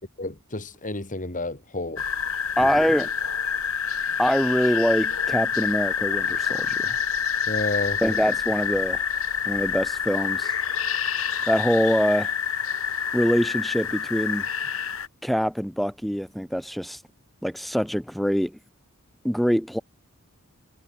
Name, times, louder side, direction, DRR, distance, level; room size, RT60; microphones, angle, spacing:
voice 1, 0.2-2.0 2.6-2.8 7.5-8.0, left 2 dB, 40° left, 4.8 m, -31 dB
sound 1, 2.0-15.1, left 7 dB, 70° left, 4.2 m, -27 dB
voice 2, 2.6-3.1 4.2-7.0 8.0-9.0 9.5-10.5 11.5-12.3 13.1-14.5 15.2-17.0 17.4-18.6 19.2-19.8, equal, ahead, 3.8 m, -24 dB
head